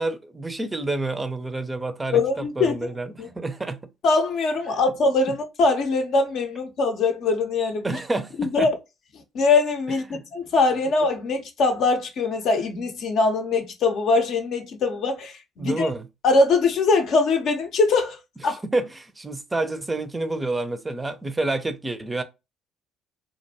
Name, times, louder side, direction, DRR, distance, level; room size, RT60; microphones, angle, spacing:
voice 1, 0.0-3.8 7.8-8.7 10.1-10.2 15.6-16.1 18.4-22.2, right 2 dB, 20° right, 0.4 m, -28 dB
voice 2, 2.1-2.8 3.2-3.3 4.0-7.9 8.4-8.7 9.3-15.9 16.2-18.2 18.4-18.6, left 3 dB, 60° left, 0.6 m, -22 dB
2.5 x 2.2 x 2.7 m
hypercardioid pair, 55°, 0 cm